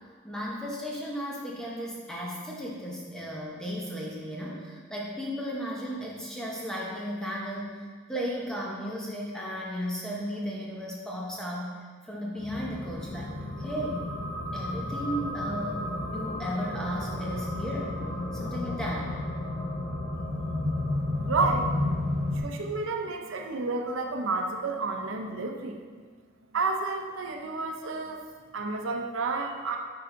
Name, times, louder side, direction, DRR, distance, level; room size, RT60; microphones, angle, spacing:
voice 1, 0.2-7.8 8.1-11.7 12.1-13.3 13.6-14.1 14.5-18.0 18.3-19.1, equal, 5° left, -4 dB, 0.9 m, -35 dB
sound 1, 12.4-22.4, left 1 dB, 55° left, 1.7 m, -32 dB
voice 2, 21.3-21.7 22.3-25.8 26.5-28.2 28.5-29.8, right 3 dB, 80° right, 2 dB, 0.6 m, -30 dB
6.9 x 4.9 x 3.8 m, 1.6 s
head